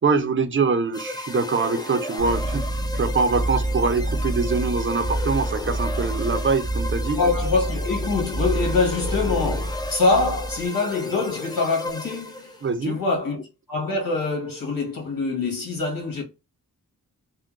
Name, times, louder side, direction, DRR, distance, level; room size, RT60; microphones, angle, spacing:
voice 1, 0.0-2.7 2.9-7.2 12.6-13.0, right 4 dB, 35° right, 0.5 m, -23 dB
sound 1, 0.9-12.7, left 2 dB, 10° left, 0.5 m, -34 dB
sound 2, 2.2-10.7, right 1 dB, 50° left, 1.0 m, -28 dB
voice 2, 7.1-13.4 13.7-16.2, left 3 dB, 75° left, 1.6 m, -24 dB
3.7 x 2.1 x 2.4 m
wide cardioid pair, 70°, 34 cm